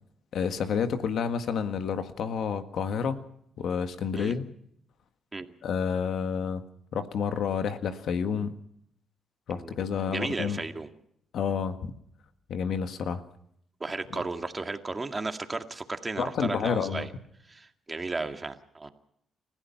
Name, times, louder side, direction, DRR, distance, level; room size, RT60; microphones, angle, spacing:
voice 1, 0.3-3.2 3.6-4.5 5.6-6.6 6.9-8.5 9.5-10.6 11.3-11.9 12.5-13.2 14.1-14.2 16.2-17.1, left 6 dB, 70° left, 8 dB, 1.7 m, -29 dB
voice 2, 10.1-10.9 13.8-17.1 17.5-18.9, right 3 dB, 25° right, 6 dB, 2.0 m, -34 dB
30.0 x 15.5 x 5.9 m, 0.70 s
cardioid pair, 90°, 0 cm